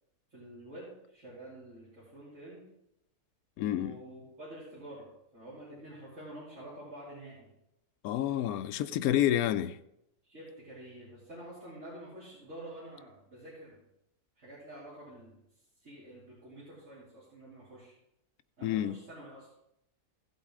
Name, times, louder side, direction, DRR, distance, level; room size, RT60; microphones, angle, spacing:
voice 1, 0.3-2.6 3.7-5.1 5.3-7.5 10.2-13.8 14.4-15.4 15.8-18.0 18.6-19.5, right 1 dB, 50° right, 3.6 m, -48 dB
voice 2, 3.6-4.0 8.0-9.8 18.6-19.0, left 12 dB, 75° left, 1.0 m, -29 dB
15.5 x 8.0 x 3.7 m
omnidirectional pair, 1.6 m